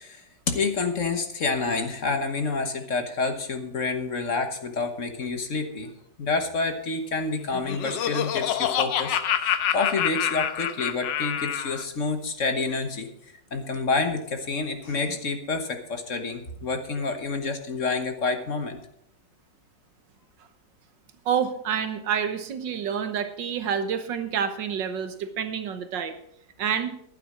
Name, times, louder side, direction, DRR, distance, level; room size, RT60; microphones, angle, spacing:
voice 1, 0.0-5.9 6.2-13.1 13.5-18.8, left 4 dB, 45° left, 7 dB, 1.4 m, -28 dB
Laughter, 7.4-11.8, left 10 dB, 80° left, 1.5 m, -27 dB
voice 2, 21.3-26.2 26.6-26.9, right 8 dB, 85° right, 9 dB, 1.8 m, -28 dB
11.5 x 9.3 x 6.1 m, 0.73 s
omnidirectional pair, 1.9 m